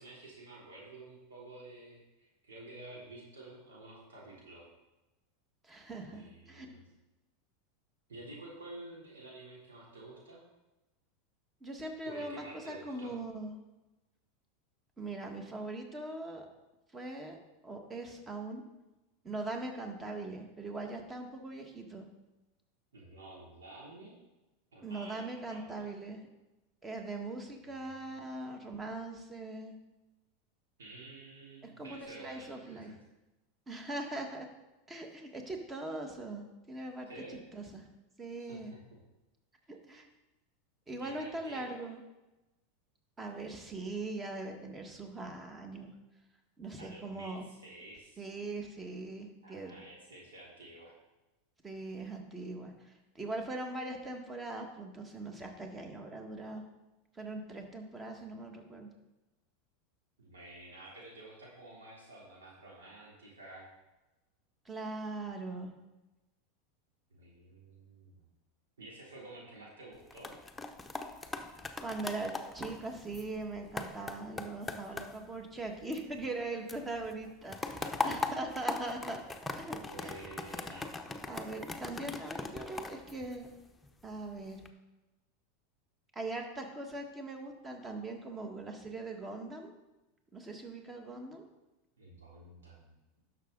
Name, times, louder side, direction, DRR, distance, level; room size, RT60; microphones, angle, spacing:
voice 1, 0.0-4.7 6.0-6.9 8.1-10.4 12.0-13.1 22.9-24.1 24.7-25.9 27.6-27.7 30.8-33.0 37.1-37.4 38.4-38.8 41.0-41.9 46.8-48.3 49.4-50.9 58.1-58.2 60.2-63.7 67.1-68.2 68.8-70.4 77.8-78.4 79.8-80.9 92.0-93.0, right 2 dB, 85° right, -4 dB, 3.3 m, -50 dB
voice 2, 5.6-6.8 11.6-13.6 15.0-16.5 16.9-18.6 19.2-22.1 24.8-26.2 26.8-29.7 31.6-32.9 33.7-34.5 34.9-37.2 37.5-37.9 38.2-38.7 39.7-40.1 40.9-42.0 43.2-45.9 46.6-47.5 48.2-49.8 51.6-56.6 57.1-58.9 64.6-65.7 71.8-79.2 79.5-80.3 81.3-83.5 84.0-84.6 86.1-89.7 90.3-91.5, right 2 dB, 20° right, 4 dB, 1.7 m, -41 dB
sound 1, 69.9-76.4 76.7-83.9 84.4-84.7, left 3 dB, 10° left, 0.9 m, -40 dB
11.5 x 6.3 x 4.0 m, 1.0 s
hypercardioid pair, 95°, 0 cm